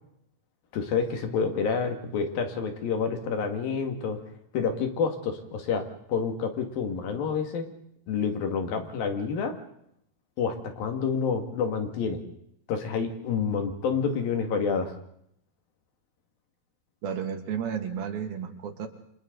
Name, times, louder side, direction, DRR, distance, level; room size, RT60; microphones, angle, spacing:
voice 1, 0.7-4.2 4.5-5.8 6.1-7.7 8.1-9.5 10.4-12.2 12.7-15.0, left 6 dB, 75° left, 5 dB, 3.9 m, -28 dB
voice 2, 17.0-18.9, right 7 dB, 80° right, 5 dB, 3.8 m, -32 dB
29.5 x 26.0 x 3.9 m, 0.71 s
omnidirectional pair, 4.2 m